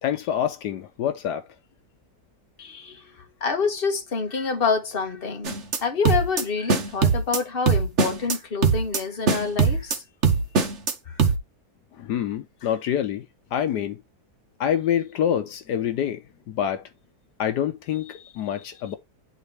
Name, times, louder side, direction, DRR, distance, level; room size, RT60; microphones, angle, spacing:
voice 1, 0.0-1.4 12.0-13.2 13.5-14.0 14.6-16.2 16.5-16.8 17.4-19.0, left 9 dB, 80° left, 1.4 m, -26 dB
voice 2, 2.6-3.1 3.4-10.0 11.1-11.2, left 5 dB, 35° left, 1.6 m, -27 dB
sound 1, 5.4-5.8 6.0-6.4 6.7-7.4 7.7-8.4 8.6-9.0 9.3-10.0 10.2-10.9 11.2-11.4, right 5 dB, 45° right, 1.3 m, -21 dB
9.9 x 4.2 x 3.2 m
omnidirectional pair, 1.8 m